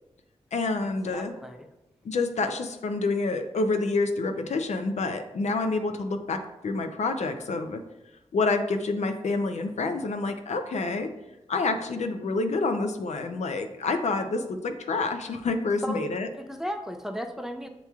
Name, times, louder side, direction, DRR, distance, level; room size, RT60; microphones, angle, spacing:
voice 1, 0.5-1.3 2.0-7.8 8.3-11.1 11.5-16.3, left 3 dB, 70° left, 6 dB, 0.4 m, -28 dB
voice 2, 1.1-1.7 15.8-16.0 16.3-17.7, equal, 5° right, 6 dB, 0.4 m, -35 dB
6.8 x 2.9 x 2.3 m, 0.95 s
wide cardioid pair, 80°, 12 cm